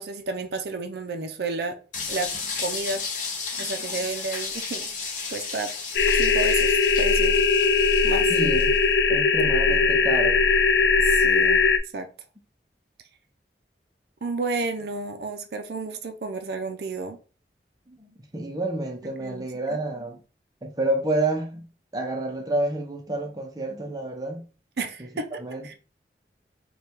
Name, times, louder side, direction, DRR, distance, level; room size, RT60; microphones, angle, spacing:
voice 1, 0.0-1.8 2.1-2.3 2.6-3.0 3.6-4.9 5.3-5.7 6.1-7.4 8.0-8.3 11.0-11.6 11.9-12.1 14.2-17.2 19.2-19.8 24.8-25.7, right 3 dB, 65° right, 0.5 m, -31 dB
sound 1, 1.9-8.8, left 4 dB, 45° left, 0.8 m, -33 dB
voice 2, 3.6-3.9 8.3-8.8 9.1-10.4 17.9-20.2 20.6-24.5 25.0-25.7, right 2 dB, 20° right, 0.6 m, -29 dB
sound 2, 5.9-11.8, left 4 dB, 80° left, 0.4 m, -20 dB
3.3 x 2.3 x 4.3 m
head